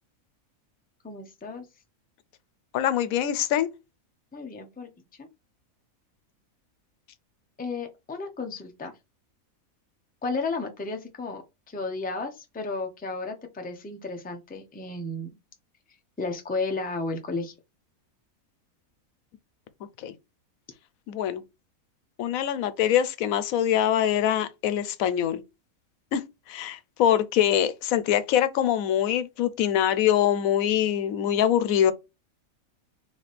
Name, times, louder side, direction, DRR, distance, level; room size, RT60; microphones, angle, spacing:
voice 1, 1.0-1.7 4.3-4.9 5.2-5.3 7.6-8.9 10.2-15.3 16.2-17.5, left 3 dB, 10° left, 0.5 m, -33 dB
voice 2, 2.7-3.7 20.0-20.1 21.1-21.4 22.2-25.4 26.1-26.2 26.5-31.9, left 10 dB, 75° left, 1.0 m, -24 dB
3.4 x 3.3 x 4.0 m
omnidirectional pair, 1.5 m